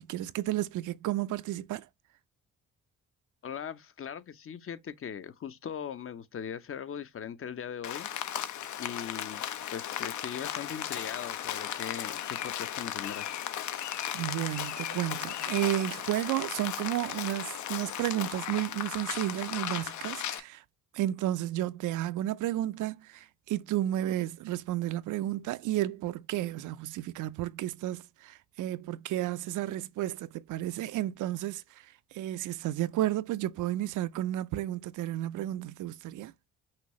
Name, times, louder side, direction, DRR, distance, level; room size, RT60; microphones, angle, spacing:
voice 1, 0.0-1.9 14.1-20.6 20.9-31.6 32.1-36.3, right 14 dB, 80° right, 0.6 m, -32 dB
voice 2, 3.4-8.1 8.8-9.4 9.7-13.5, left 8 dB, 45° left, 0.8 m, -40 dB
Rain, 7.8-20.4, left 10 dB, 70° left, 0.9 m, -36 dB
5.9 x 2.7 x 3.0 m
cardioid pair, 90°, 30 cm